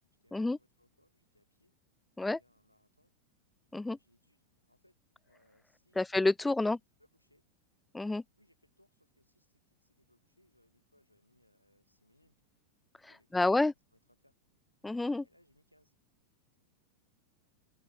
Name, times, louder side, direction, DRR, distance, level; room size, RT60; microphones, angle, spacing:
voice 1, 0.2-1.7 2.2-3.1 3.9-6.1 7.0-7.4 8.4-12.4 13.1-14.3 15.2-15.9, left 1 dB, 90° left, 5.5 m, -70 dB
voice 2, 6.0-6.8 7.9-8.2 13.3-13.7 14.8-15.2, left 2 dB, 5° left, 0.4 m, -28 dB
open air
figure-of-eight pair, 90°, 0 cm